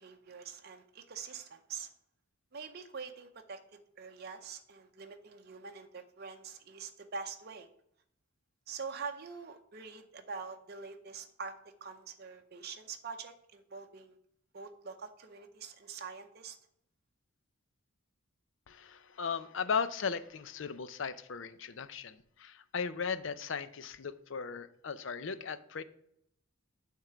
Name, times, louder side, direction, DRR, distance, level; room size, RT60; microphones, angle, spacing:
voice 1, 0.0-1.9 2.5-3.6 4.0-7.7 8.7-11.5 11.8-14.2 14.5-16.6, right 5 dB, 50° right, 5 dB, 0.7 m, -45 dB
voice 2, 18.7-25.8, left 6 dB, 60° left, 13 dB, 0.5 m, -37 dB
8.9 x 3.7 x 6.6 m, 0.71 s
head